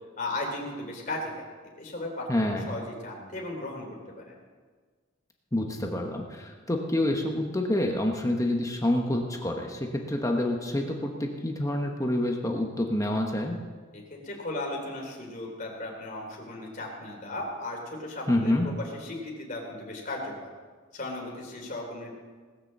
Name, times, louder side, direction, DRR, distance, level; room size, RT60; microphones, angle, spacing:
voice 1, 0.2-1.3 1.8-4.4 13.9-20.5 20.9-22.1, left 2 dB, 40° left, -1 dB, 3.2 m, -36 dB
voice 2, 2.3-2.8 5.5-13.6 18.3-18.7, left 1 dB, 15° left, 2 dB, 1.0 m, -27 dB
18.5 x 6.8 x 7.4 m, 1.5 s
head